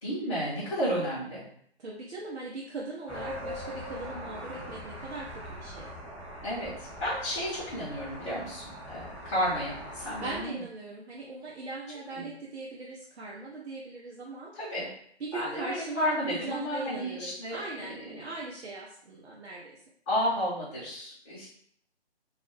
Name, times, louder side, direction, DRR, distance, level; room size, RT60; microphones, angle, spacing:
voice 1, 0.0-1.4 6.4-10.6 12.1-12.4 14.5-14.9 15.3-18.3 20.1-21.5, equal, 30° left, -9 dB, 0.8 m, -32 dB
voice 2, 1.8-5.9 10.2-14.5 15.2-19.8, right 3 dB, 70° right, -4 dB, 0.6 m, -40 dB
sound 1, 3.1-10.4, equal, ahead, 0.5 m, -42 dB
2.4 x 2.1 x 3.0 m, 0.65 s
figure-of-eight pair, 150°, 33 cm